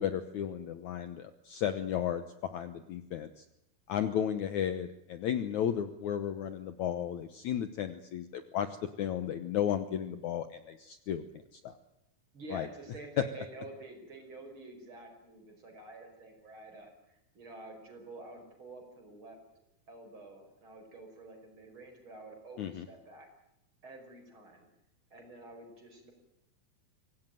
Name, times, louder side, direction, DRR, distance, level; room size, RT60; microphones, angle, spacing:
voice 1, 0.0-3.4 3.9-8.7 9.0-11.7 12.5-12.7 22.6-22.9, left 9 dB, 65° left, 10 dB, 2.1 m, -34 dB
voice 2, 3.9-4.2 12.3-19.4 19.9-23.3 23.8-24.7 25.1-26.1, right 2 dB, 35° right, 3 dB, 5.9 m, -49 dB
25.0 x 17.5 x 9.1 m, 0.89 s
omnidirectional pair, 4.3 m